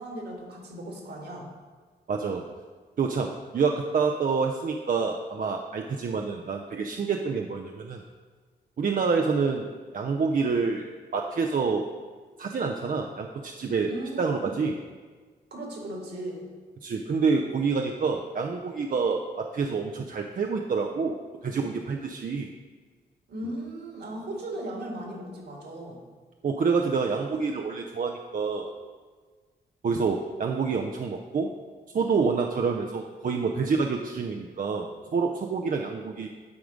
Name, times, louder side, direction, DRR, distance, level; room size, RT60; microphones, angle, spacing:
voice 1, 0.0-1.5 13.9-14.6 15.5-16.5 23.3-26.0, right 1 dB, 70° right, 0 dB, 1.9 m, -37 dB
voice 2, 2.1-2.4 3.0-8.0 8.8-9.7 9.9-10.9 11.1-11.9 12.4-13.9 14.2-14.8 16.8-21.2 21.4-22.5 26.4-28.7 29.8-31.5 31.9-36.3, right 5 dB, 50° right, 2 dB, 0.5 m, -27 dB
9.5 x 3.7 x 5.1 m, 1.5 s
cardioid pair, 60°, 18 cm